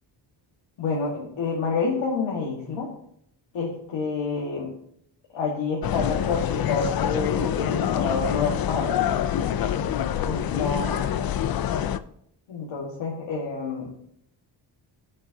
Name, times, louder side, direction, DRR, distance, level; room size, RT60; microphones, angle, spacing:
voice 1, 0.8-2.9 3.5-4.7 5.3-9.1 9.7-9.9 10.2-11.2 12.5-13.9, left 4 dB, 80° left, -4 dB, 2.0 m, -28 dB
sound 1, 5.8-12.0, left 10 dB, 55° left, 0.5 m, -26 dB
16.5 x 6.3 x 2.9 m, 0.70 s
wide cardioid pair, 175°, 45 cm